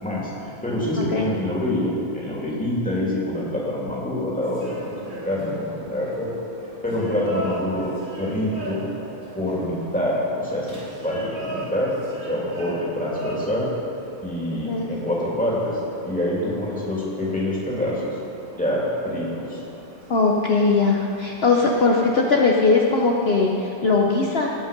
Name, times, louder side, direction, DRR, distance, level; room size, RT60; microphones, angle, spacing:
voice 1, 0.0-6.5 6.8-7.9 8.2-8.8 9.4-10.8 11.0-11.9 12.3-13.7 14.2-18.2 18.6-19.6, left 1 dB, 5° left, -6 dB, 2.7 m, -26 dB
voice 2, 1.0-1.3 14.7-14.9 20.1-24.5, left 3 dB, 50° left, -1 dB, 0.9 m, -20 dB
sound 1, 4.4-23.5, right 2 dB, 75° right, 3.4 m, -40 dB
18.5 x 6.3 x 5.2 m, 2.9 s
omnidirectional pair, 1.5 m